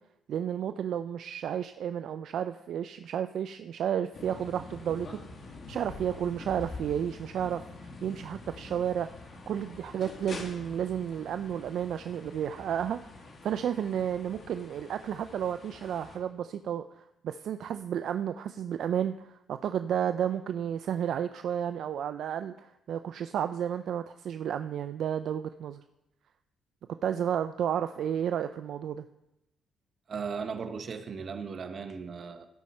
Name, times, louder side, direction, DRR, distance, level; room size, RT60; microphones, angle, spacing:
voice 1, 0.3-5.2 5.7-7.6 8.0-9.1 9.5-25.8 27.0-29.1, right 9 dB, 70° right, 0.4 m, -32 dB
sound 1, 4.1-16.2, left 3 dB, 50° left, 2.1 m, -46 dB
voice 2, 30.1-32.5, right 5 dB, 50° right, 1.0 m, -37 dB
16.5 x 5.6 x 4.2 m
cardioid pair, 90°, 0 cm